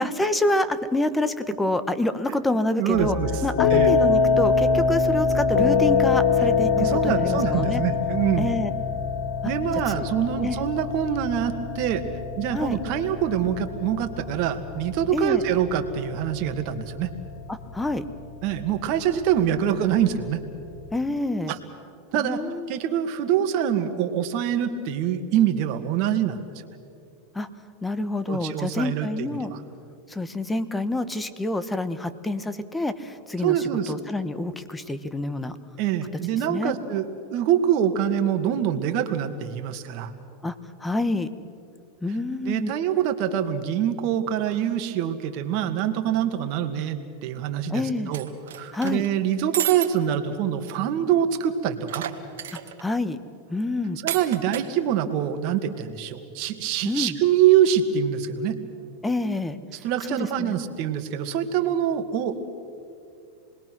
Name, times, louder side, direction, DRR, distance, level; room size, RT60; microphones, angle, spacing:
voice 1, 0.0-3.2 3.4-7.8 8.4-8.7 10.0-10.1 10.4-10.6 12.5-12.8 15.1-15.4 17.5-18.0 20.9-21.5 22.2-22.8 27.3-27.5 27.8-29.5 30.1-33.6 33.9-35.6 36.5-36.8 40.4-40.5 40.8-41.3 42.0-42.7 47.7-48.1 48.7-49.0 52.5-53.2 53.5-54.0 56.8-57.2 59.0-59.6 60.1-60.6, left 2 dB, 10° left, 12 dB, 1.2 m, -27 dB
voice 2, 2.8-3.3 3.7-3.9 6.8-8.6 9.5-12.0 12.4-17.1 18.4-20.4 21.5-21.6 22.1-22.4 22.7-26.4 28.3-29.6 33.4-33.9 35.8-40.1 42.5-48.3 48.6-52.0 54.0-58.6 59.8-62.5, right 9 dB, 55° right, 7 dB, 1.9 m, -25 dB
sound 1, 2.9-20.9, left 5 dB, 70° left, 2.4 m, -25 dB
sound 2, 48.1-49.1 49.5-49.9 50.3-50.4 50.6-50.7 51.9-52.8 54.1-54.7, right 11 dB, 80° right, 1.6 m, -31 dB
27.5 x 21.0 x 6.2 m, 2.5 s
supercardioid pair, 120°, 0 cm